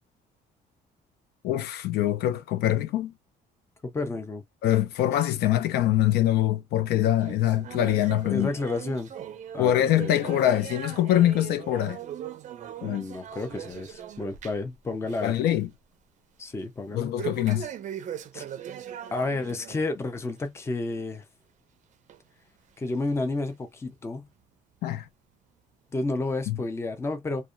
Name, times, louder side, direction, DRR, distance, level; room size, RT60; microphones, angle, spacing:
voice 1, 1.4-3.1 4.6-8.5 9.6-12.0 12.8-13.0 15.2-15.7 16.9-17.7 24.8-25.1 26.5-26.6, left 12 dB, 75° left, 0.5 m, -24 dB
voice 2, 3.8-4.4 8.3-9.1 9.5-10.1 12.8-15.4 16.4-17.2 18.3-18.4 19.1-21.2 22.8-24.3 25.9-27.5, left 2 dB, 15° left, 0.6 m, -31 dB
sound 1, 7.2-14.7 15.0-15.4 15.7-15.8 17.2-19.8 20.2-20.4 21.1-21.2 22.1-22.2 23.0-23.1, right 10 dB, 45° right, 0.5 m, -40 dB
2.7 x 2.2 x 2.4 m
cardioid pair, 110°, 17 cm